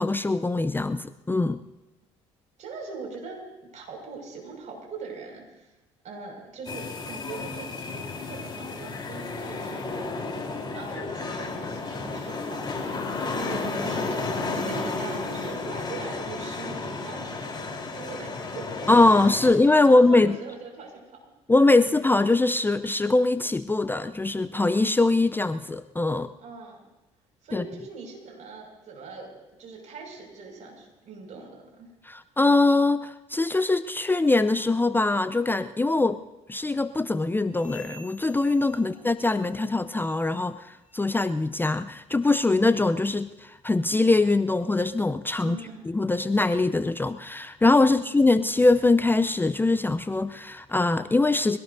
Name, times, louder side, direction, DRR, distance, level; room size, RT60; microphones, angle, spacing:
voice 1, 0.0-1.6 18.9-20.4 21.5-26.3 27.5-27.6 32.1-36.2 36.5-45.6 45.9-51.6, left 2 dB, 15° left, 11 dB, 0.6 m, -22 dB
voice 2, 2.6-5.7 6.0-10.1 10.7-12.7 13.2-14.3 14.5-18.9 19.4-19.6 19.9-21.2 26.4-26.9 27.4-31.9 38.8-38.9 45.4-45.8 47.9-48.2, right 4 dB, 55° right, 1 dB, 5.9 m, -41 dB
sound 1, 6.7-19.5, left 3 dB, 30° left, 3.8 m, -32 dB
sound 2, 37.5-39.7 40.0-40.4 40.8-41.1 41.7-41.8 42.5-42.6 43.3-43.4, left 2 dB, 90° left, 1.4 m, -51 dB
24.0 x 17.5 x 2.7 m, 1.0 s
hypercardioid pair, 60°, 15 cm